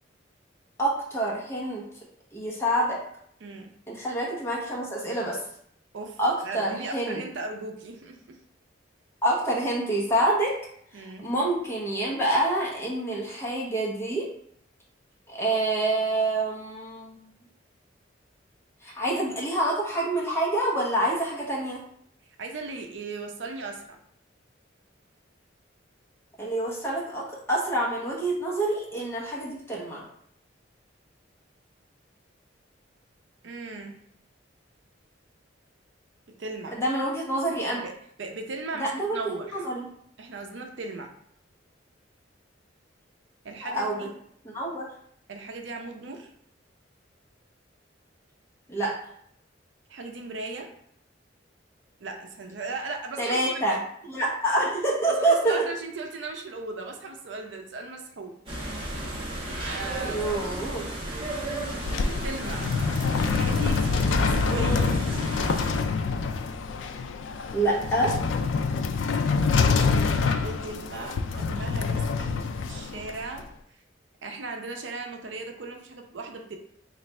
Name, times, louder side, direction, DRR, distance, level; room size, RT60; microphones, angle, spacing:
voice 1, 0.8-1.8 2.3-3.0 3.9-5.4 6.2-7.2 9.2-10.5 10.9-14.2 15.3-17.2 18.8-21.8 26.4-30.0 36.7-37.8 38.8-39.8 43.6-44.1 44.5-44.8 48.7-48.9 53.2-53.8 54.1-55.6 60.0-60.8 64.5-64.9 67.5-68.1, right 1 dB, 15° left, -4 dB, 1.0 m, -27 dB
voice 2, 6.4-8.4 10.9-11.3 22.4-24.0 33.4-34.0 36.4-36.8 37.8-37.9 38.2-39.6 40.2-41.1 43.4-44.1 45.3-46.3 49.9-50.7 52.0-53.8 55.2-58.3 59.7-60.3 61.8-62.7 63.2-64.8 69.1-73.4 74.2-76.6, right 3 dB, 70° right, 3 dB, 0.5 m, -37 dB
sound 1, 58.5-65.7, right 1 dB, 30° right, 1.1 m, -34 dB
sound 2, 61.5-73.4, left 4 dB, 80° left, 0.3 m, -26 dB
3.2 x 2.4 x 4.2 m, 0.68 s
head